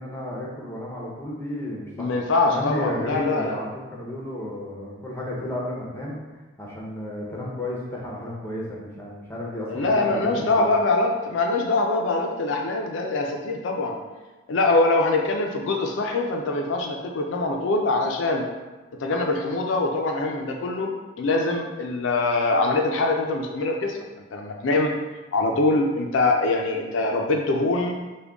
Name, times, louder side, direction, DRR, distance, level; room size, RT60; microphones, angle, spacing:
voice 1, 0.0-2.1 2.4-6.2 6.6-10.7, left 1 dB, 10° left, -3 dB, 0.6 m, -32 dB
voice 2, 2.0-3.6 9.7-14.0 14.5-18.5 19.0-20.9 21.2-24.0 24.3-24.9 25.3-28.0, left 2 dB, 70° left, 1 dB, 0.4 m, -23 dB
3.6 x 2.2 x 3.4 m, 1.2 s
head